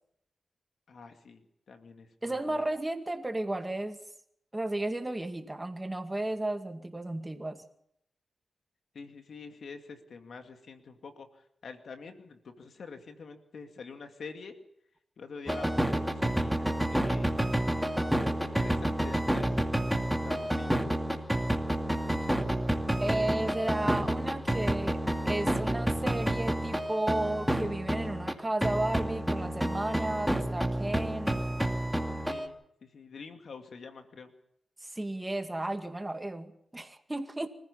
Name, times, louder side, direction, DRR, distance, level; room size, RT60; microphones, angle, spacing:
voice 1, 0.9-1.4 1.7-2.6 8.9-11.3 11.6-14.6 15.2-17.6 18.2-19.5 20.2-20.8 32.3-32.6 32.9-34.3, left 5 dB, 75° left, 6 dB, 2.3 m, -46 dB
voice 2, 2.2-4.0 4.5-7.6 23.0-31.4 34.8-37.5, right 1 dB, 20° right, 7 dB, 2.2 m, -33 dB
sound 1, 15.5-28.4 28.6-32.5, right 1 dB, ahead, 2.5 m, -29 dB
25.5 x 15.0 x 7.1 m, 0.74 s
cardioid pair, 60°, 0 cm